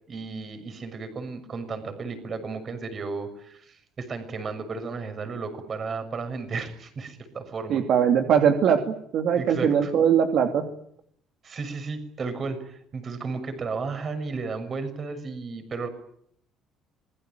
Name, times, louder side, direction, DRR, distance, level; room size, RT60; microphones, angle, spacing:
voice 1, 0.1-7.8 9.4-9.9 11.4-15.9, right 4 dB, 35° right, 10 dB, 6.6 m, -34 dB
voice 2, 7.7-10.6, right 8 dB, 60° right, 4 dB, 2.9 m, -21 dB
26.5 x 21.5 x 9.2 m, 0.70 s
cardioid pair, 125°, 0 cm